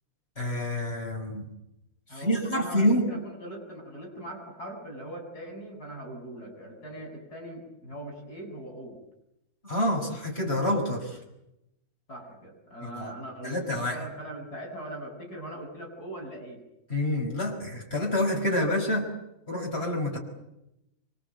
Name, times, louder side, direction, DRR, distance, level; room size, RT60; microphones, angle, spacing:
voice 1, 0.4-1.5 2.1-3.1 9.6-11.2 12.8-13.1 13.4-14.0 16.9-19.1 19.5-20.2, left 1 dB, 40° left, 0 dB, 5.7 m, -27 dB
voice 2, 2.1-9.0 12.1-16.6, right 1 dB, 90° left, 2 dB, 8.5 m, -41 dB
26.5 x 25.0 x 8.0 m, 0.87 s
omnidirectional pair, 1.6 m